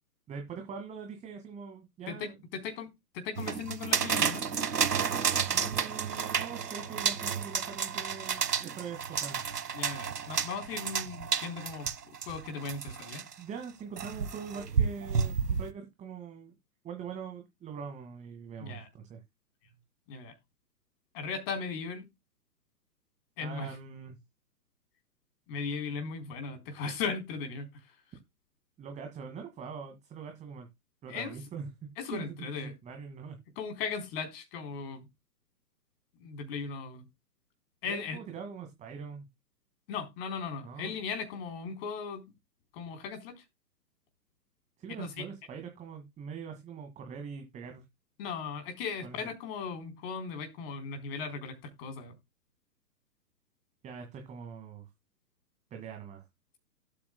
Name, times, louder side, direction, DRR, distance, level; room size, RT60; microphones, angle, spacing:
voice 1, 0.3-2.4 5.5-9.4 13.4-16.5 16.8-19.2 23.4-24.2 28.8-30.7 31.0-31.7 32.1-33.4 37.8-39.3 40.6-41.0 44.8-47.8 49.0-49.3 53.8-54.9 55.7-56.3, right 6 dB, 15° right, 2.1 m, -43 dB
voice 2, 2.1-4.5 9.7-13.3 18.6-18.9 20.1-20.3 21.1-22.0 23.4-23.8 25.5-28.0 31.1-31.3 32.0-32.7 33.6-35.0 36.2-37.0 37.8-38.2 39.9-42.3 42.7-43.4 45.0-45.3 48.2-52.1, left 5 dB, 35° left, 4.1 m, -37 dB
sound 1, 3.4-13.3 14.0-15.7, right 6 dB, 75° right, 1.4 m, -31 dB
18.0 x 8.8 x 2.2 m
figure-of-eight pair, 120°, 49 cm